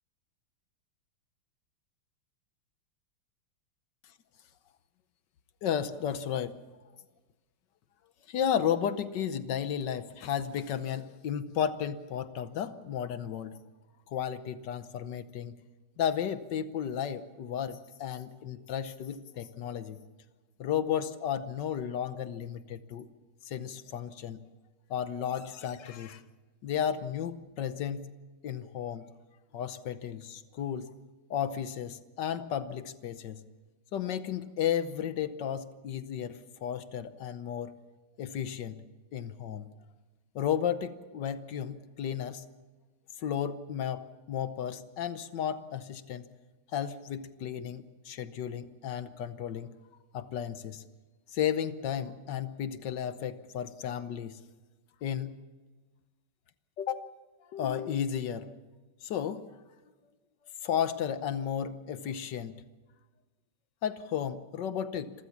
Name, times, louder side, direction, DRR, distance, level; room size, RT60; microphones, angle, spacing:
voice 1, 5.6-6.6 8.3-13.6 14.1-15.6 16.0-20.0 20.6-23.1 23.4-24.4 24.9-26.2 26.6-28.1 28.4-29.1 29.5-30.9 31.3-33.4 33.9-37.7 38.2-38.8 39.1-39.7 40.3-42.4 43.2-46.3 46.7-49.7 50.1-50.8 51.3-54.4 55.0-55.3 56.8-57.1 57.5-58.6 59.0-59.4 60.6-62.5 63.8-65.1, left 9 dB, 60° left, 12 dB, 1.3 m, -33 dB
27.0 x 14.5 x 7.2 m, 1.2 s
omnidirectional pair, 2.4 m